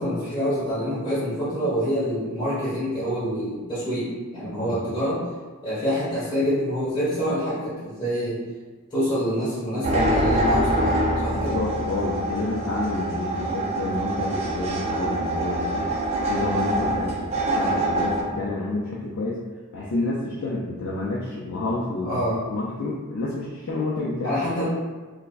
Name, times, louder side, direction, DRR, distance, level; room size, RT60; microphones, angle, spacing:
voice 1, 0.0-5.2 5.6-8.4 8.9-11.6 22.0-22.5 24.2-24.7, equal, 20° left, -12 dB, 1.4 m, -26 dB
sound 1, 9.8-18.2, right 1 dB, 30° right, 0.4 m, -25 dB
voice 2, 11.3-15.9 16.3-19.4 19.7-24.4, left 2 dB, 75° left, -5 dB, 0.4 m, -29 dB
4.6 x 2.0 x 2.5 m, 1.4 s
head